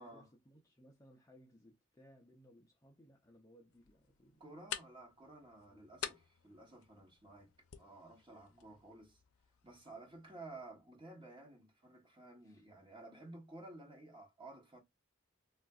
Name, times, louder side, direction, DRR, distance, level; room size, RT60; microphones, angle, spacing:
voice 1, 0.0-4.6 5.5-5.9 8.5-8.8 12.4-12.7, equal, 15° left, 0.5 m, -64 dB
sound 1, 3.7-10.7, left 10 dB, 90° left, 0.5 m, -50 dB
voice 2, 4.4-7.5 7.8-9.2 9.6-14.8, right 2 dB, 25° right, 1.0 m, -54 dB
3.7 x 2.4 x 2.3 m
head